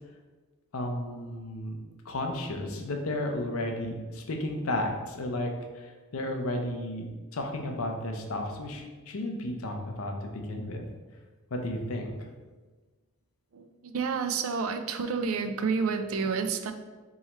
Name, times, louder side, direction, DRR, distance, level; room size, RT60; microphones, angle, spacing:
voice 1, 0.7-1.8 2.0-5.9 6.1-7.1 7.3-10.8 11.5-12.2, left 1 dB, 70° left, 3 dB, 0.7 m, -33 dB
voice 2, 13.5-16.7, right 5 dB, 70° right, 8 dB, 0.4 m, -30 dB
3.6 x 3.0 x 4.3 m, 1.3 s
head